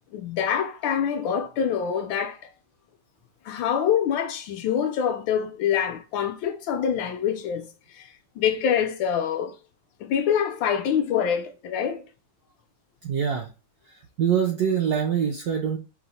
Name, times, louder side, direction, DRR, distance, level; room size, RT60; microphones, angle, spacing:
voice 1, 0.1-2.4 3.5-7.7 7.9-8.1 8.4-9.5 10.0-12.0, left 8 dB, 75° left, 1.2 m, -25 dB
voice 2, 13.0-13.5 13.9-15.8, right 8 dB, 70° right, 0.9 m, -25 dB
4.7 x 2.0 x 4.0 m
omnidirectional pair, 2.2 m